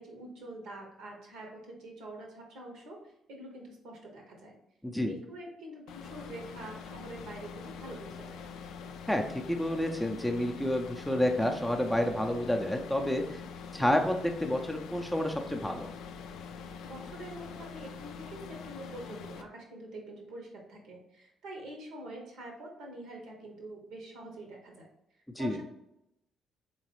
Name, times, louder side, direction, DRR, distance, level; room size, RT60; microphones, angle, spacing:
voice 1, 0.0-4.6 5.0-8.4 16.8-24.9 25.4-25.6, right 1 dB, 65° right, 1 dB, 0.9 m, -46 dB
sound 1, 5.9-19.4, left 6 dB, 65° left, 0.3 m, -44 dB
voice 2, 9.1-13.4 13.7-15.9 25.4-25.6, left 1 dB, 5° left, 3 dB, 0.5 m, -29 dB
3.9 x 3.0 x 3.0 m, 0.83 s
figure-of-eight pair, 45°, 0 cm